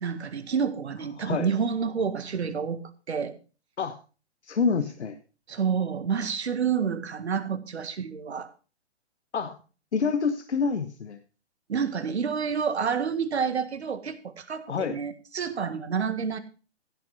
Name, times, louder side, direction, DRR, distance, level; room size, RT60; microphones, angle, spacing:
voice 1, 0.0-3.3 5.5-8.5 11.7-16.4, right 6 dB, 75° right, 11 dB, 1.8 m, -29 dB
voice 2, 1.2-1.5 3.8-4.0 4.4-5.2 9.3-9.6 9.9-11.2 14.7-15.0, left 5 dB, 80° left, 8 dB, 1.3 m, -27 dB
15.5 x 5.9 x 5.4 m, 0.35 s
hypercardioid pair, 130°, 33 cm